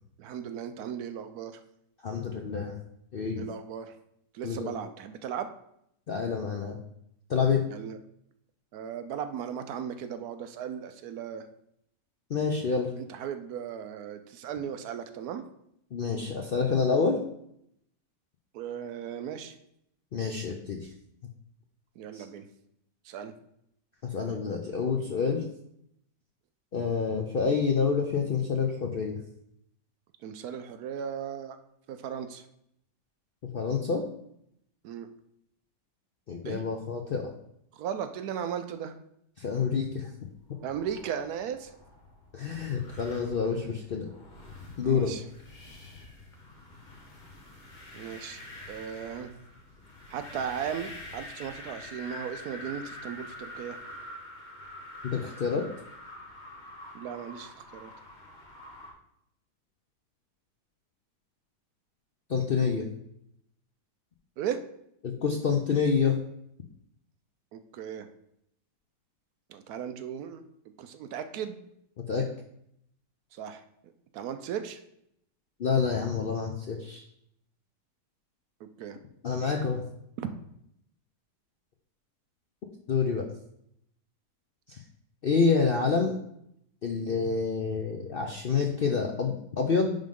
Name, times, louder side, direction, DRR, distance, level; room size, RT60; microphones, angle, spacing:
voice 1, 0.2-1.6 3.4-4.0 4.3-5.5 7.7-8.0 8.7-11.5 13.0-15.4 18.5-19.6 21.9-22.5 23.0-23.3 30.2-31.6 31.9-32.5 34.8-35.1 36.4-36.6 37.7-39.0 40.6-41.8 44.8-45.2 47.9-48.4 48.7-49.3 50.1-53.8 56.9-57.9 64.4-64.6 67.5-68.1 69.5-70.4 70.8-71.6 73.3-73.6 74.1-74.8 78.6-79.0 80.2-80.3, right 8 dB, 70° right, 8 dB, 1.0 m, -36 dB
voice 2, 2.0-2.8 3.1-3.5 4.4-4.7 6.1-6.8 7.3-7.6 12.3-12.9 15.9-17.2 20.1-20.9 22.1-22.2 24.0-25.5 26.7-29.2 33.5-34.0 36.3-37.3 39.4-40.1 42.3-44.1 44.8-45.1 55.0-55.7 62.3-62.9 65.0-66.2 72.1-72.3 75.6-77.0 79.2-79.9 82.9-83.3 84.7-84.8 85.2-86.1 86.8-90.0, left 5 dB, 80° left, 2 dB, 0.5 m, -27 dB
sound 1, 40.4-58.9, left 1 dB, 30° left, 1.1 m, -46 dB
10.0 x 3.8 x 3.6 m, 0.74 s
omnidirectional pair, 1.8 m